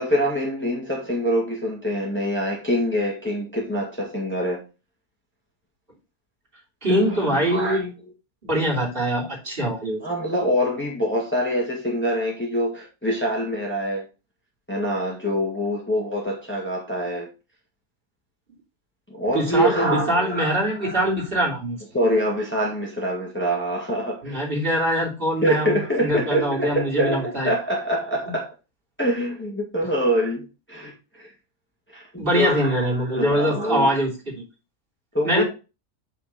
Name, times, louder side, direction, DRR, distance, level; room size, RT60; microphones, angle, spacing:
voice 1, 0.0-4.6 6.9-7.9 10.0-14.1 14.7-17.3 19.1-21.0 21.9-24.5 25.4-28.5 29.0-31.3 31.9-32.0 32.4-33.9 35.1-35.4, equal, 10° left, 2.0 m, -25 dB
voice 2, 6.8-7.9 8.5-10.0 19.3-21.8 24.2-27.5 32.2-34.4 35.2-35.4, equal, 40° right, 3.3 m, -23 dB
8.5 x 4.5 x 4.3 m
omnidirectional pair, 1.5 m